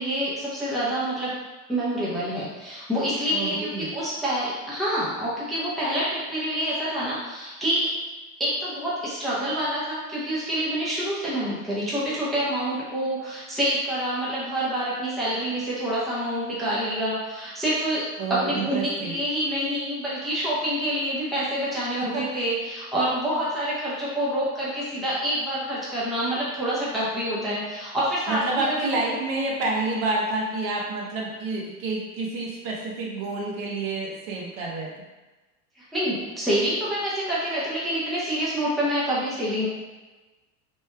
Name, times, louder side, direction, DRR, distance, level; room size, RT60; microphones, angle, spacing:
voice 1, 0.0-1.3 1.7-7.9 8.4-18.0 18.3-29.0 35.9-39.7, right 1 dB, ahead, -9 dB, 0.7 m, -27 dB
voice 2, 3.3-3.9 18.2-19.1 22.0-22.2 28.3-34.9, right 2 dB, 50° right, -3 dB, 0.9 m, -29 dB
3.2 x 2.2 x 3.2 m, 1.2 s
supercardioid pair, 130°, 43 cm